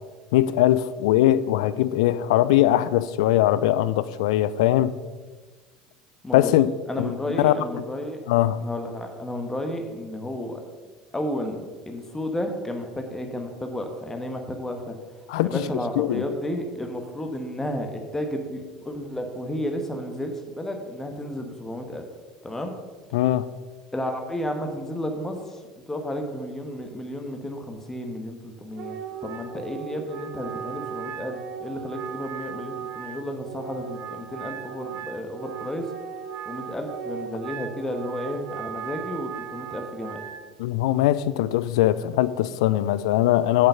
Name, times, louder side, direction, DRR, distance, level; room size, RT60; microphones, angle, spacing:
voice 1, 0.3-4.9 6.3-6.7 7.0-7.6 8.3-8.6 15.3-15.6 16.0-16.2 23.1-23.5 40.6-43.7, left 14 dB, 70° left, 16 dB, 0.4 m, -21 dB
voice 2, 6.9-8.2 8.6-10.6 11.1-15.0 15.4-22.1 22.4-22.7 23.9-25.6 25.9-35.8 36.4-40.2, left 1 dB, 10° left, 4 dB, 1.3 m, -32 dB
Wind instrument woodwind instrument, 28.7-40.4, right 8 dB, 55° right, 0.9 m, -37 dB
8.0 x 7.3 x 5.6 m, 1.4 s
hypercardioid pair, 75°, 3 cm